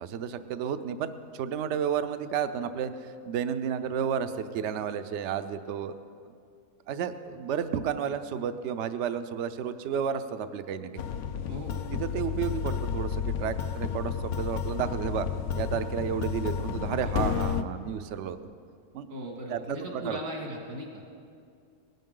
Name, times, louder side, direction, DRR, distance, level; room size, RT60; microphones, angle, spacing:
voice 1, 0.0-6.0 6.9-10.9 12.0-15.3 15.5-18.4 18.9-19.1 19.5-20.2, right 8 dB, 65° right, 11 dB, 0.7 m, -32 dB
sound 1, 11.0-17.6, left 7 dB, 65° left, 0.8 m, -31 dB
voice 2, 11.5-11.8 19.1-21.2, equal, 85° right, 0 dB, 2.4 m, -38 dB
19.0 x 11.0 x 3.8 m, 2.3 s
omnidirectional pair, 1.7 m